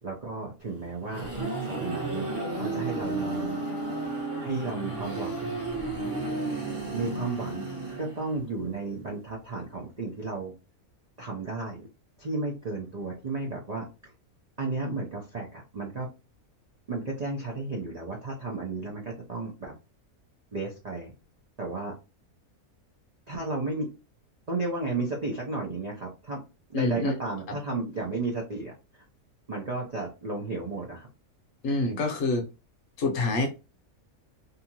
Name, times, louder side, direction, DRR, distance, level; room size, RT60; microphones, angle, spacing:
voice 1, 0.0-1.3 1.6-2.3 2.6-3.6 4.4-5.5 6.9-7.7 8.0-10.5 11.2-11.9 12.2-13.9 14.6-16.1 16.9-19.7 20.5-21.1 21.6-21.9 23.3-23.9 24.5-26.4 26.7-29.0 29.5-31.1, right 3 dB, 65° right, -1 dB, 0.4 m, -33 dB
sound 1, 0.8-8.5, right 2 dB, 10° right, 0.8 m, -33 dB
voice 2, 26.7-27.1 27.5-27.6 31.6-32.5 33.0-33.5, left 2 dB, 65° left, 4 dB, 1.0 m, -26 dB
2.7 x 2.4 x 2.8 m, 0.29 s
omnidirectional pair, 1.6 m